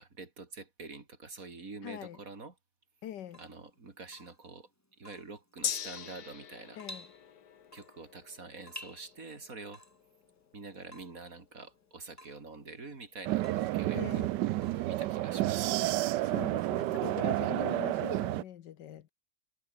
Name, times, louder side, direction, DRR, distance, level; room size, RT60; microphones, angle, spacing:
voice 1, 0.0-2.5 3.4-4.7 5.0-6.8 7.7-9.8 10.5-14.3 14.9-16.0, right 3 dB, 50° right, 3.5 m, -46 dB
voice 2, 1.8-2.2 3.0-3.4 6.8-7.1 13.9-14.3 16.2-19.1, left 11 dB, 85° left, 1.7 m, -42 dB
Water tap faucet / Drip, 3.2-15.4, left 1 dB, 10° left, 2.8 m, -54 dB
Gong, 5.6-13.4 13.7-13.8, left 8 dB, 65° left, 1.7 m, -44 dB
sound 1, 13.3-18.4, right 15 dB, 85° right, 1.2 m, -30 dB
omnidirectional pair, 1.8 m